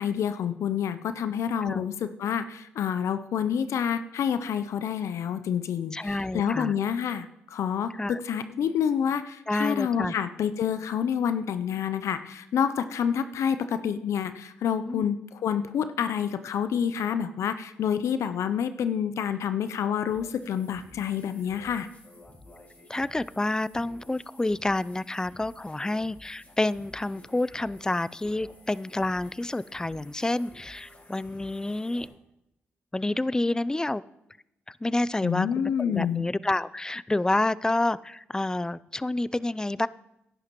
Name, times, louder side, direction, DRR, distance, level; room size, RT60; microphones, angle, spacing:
voice 1, 0.0-21.9 35.2-36.3, left 8 dB, 70° left, 12 dB, 0.5 m, -28 dB
voice 2, 5.9-6.8 8.0-8.2 9.5-10.1 14.9-15.1 22.9-32.1 32.9-34.0 34.7-39.9, left 2 dB, 15° left, 19 dB, 0.4 m, -29 dB
sound 1, 20.1-32.1, left 1 dB, 35° left, 5.1 m, -52 dB
16.5 x 10.5 x 3.0 m, 0.83 s
supercardioid pair, 45°, 5 cm